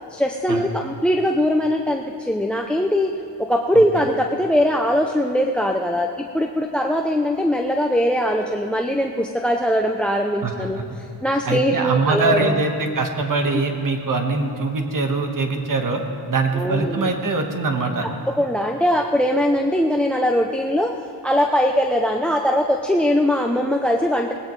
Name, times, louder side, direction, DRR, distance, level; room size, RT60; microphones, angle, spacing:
voice 1, 0.1-3.1 3.4-12.6 16.5-17.1 18.3-24.3, equal, 5° left, 3 dB, 0.5 m, -21 dB
voice 2, 10.4-10.8 11.4-16.0 16.3-18.1, right 3 dB, 50° right, 4 dB, 1.5 m, -23 dB
19.5 x 16.5 x 3.2 m, 2.6 s
wide cardioid pair, 115°, 40 cm